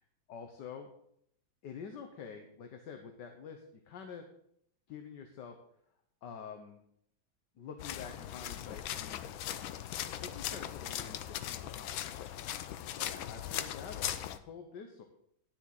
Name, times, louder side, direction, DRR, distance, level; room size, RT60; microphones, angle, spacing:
voice 1, 0.3-0.9 1.6-4.3 4.9-5.6 6.2-6.8 7.6-9.2 10.1-12.3 13.0-15.0, left 6 dB, 65° left, 5 dB, 1.6 m, -47 dB
Footsteps Light Mud A, 7.8-14.4, left 11 dB, 90° left, 1.5 m, -39 dB
11.0 x 7.0 x 6.4 m, 0.71 s
omnidirectional pair, 2.1 m